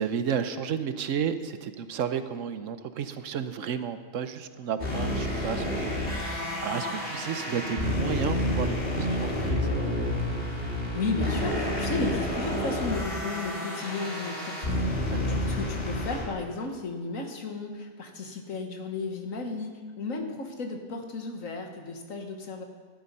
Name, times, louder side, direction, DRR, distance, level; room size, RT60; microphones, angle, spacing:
voice 1, 0.0-9.7 15.1-15.4, right 7 dB, 70° right, 11 dB, 1.1 m, -32 dB
sound 1, 4.8-16.2, left 1 dB, 45° left, 2.7 m, -29 dB
voice 2, 10.9-19.7 20.0-22.6, left 3 dB, 80° left, 3 dB, 1.9 m, -34 dB
14.0 x 11.5 x 5.5 m, 1.5 s
omnidirectional pair, 1.4 m